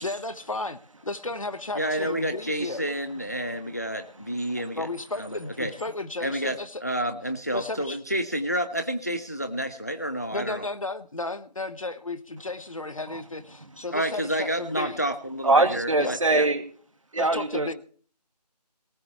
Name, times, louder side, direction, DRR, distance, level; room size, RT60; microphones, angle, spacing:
voice 1, 0.0-2.8 4.7-6.8 7.5-8.0 10.3-15.0 16.0-16.2 17.2-17.7, left 2 dB, 50° left, 13 dB, 1.1 m, -34 dB
voice 2, 1.8-4.9 5.2-5.7 6.2-10.6 13.9-16.5, equal, 25° left, 8 dB, 0.6 m, -29 dB
voice 3, 15.4-16.6 17.1-17.7, right 2 dB, 50° right, 8 dB, 2.2 m, -22 dB
18.5 x 7.9 x 7.0 m, 0.42 s
figure-of-eight pair, 165°, 21 cm